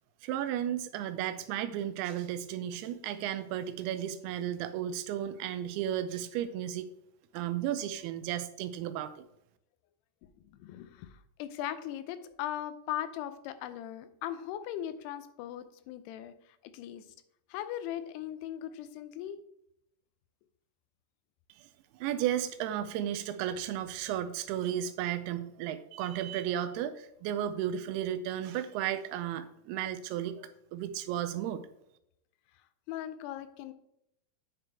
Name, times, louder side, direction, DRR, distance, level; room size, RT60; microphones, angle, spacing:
voice 1, 0.2-6.9 7.3-9.1 22.0-31.6, right 10 dB, 85° right, 11 dB, 2.5 m, -34 dB
voice 2, 10.5-11.1 11.4-16.3 16.7-17.1 17.5-19.4 32.9-33.7, left 11 dB, 85° left, 12 dB, 2.7 m, -38 dB
8.8 x 5.9 x 3.3 m, 0.79 s
omnidirectional pair, 4.6 m